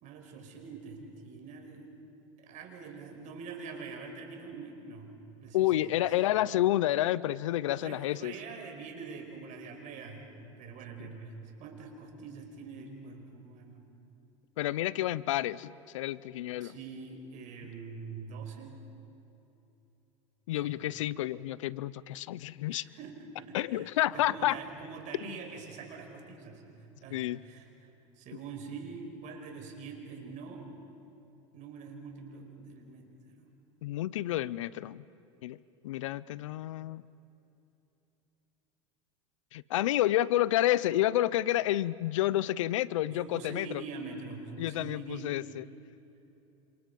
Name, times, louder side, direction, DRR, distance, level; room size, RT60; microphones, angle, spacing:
voice 1, 0.0-1.9 2.4-5.2 5.4-6.7 7.8-13.8 16.6-18.7 20.6-20.7 22.7-23.9 24.1-26.6 27.0-27.9 28.2-30.7 31.5-33.5 43.1-45.3, right 5 dB, 50° right, 3 dB, 5.2 m, -44 dB
voice 2, 5.5-8.3 11.0-11.1 14.6-16.7 20.5-22.8 23.5-24.6 25.2-25.4 27.1-27.4 33.8-35.0 35.4-35.6 35.8-37.0 39.5-43.8 44.6-45.6, left 14 dB, 80° left, 20 dB, 0.6 m, -29 dB
29.0 x 26.5 x 5.3 m, 3.0 s
hypercardioid pair, 95°, 16 cm